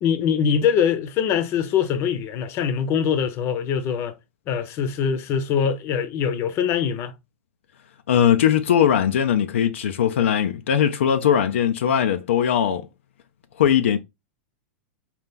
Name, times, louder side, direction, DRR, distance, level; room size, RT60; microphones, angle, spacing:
voice 1, 0.0-4.1 4.5-7.1, left 7 dB, 40° left, 0.7 m, -23 dB
voice 2, 8.1-12.9 13.6-14.0, left 9 dB, 80° left, 0.5 m, -20 dB
4.3 x 2.4 x 3.6 m
hypercardioid pair, 115°, 7 cm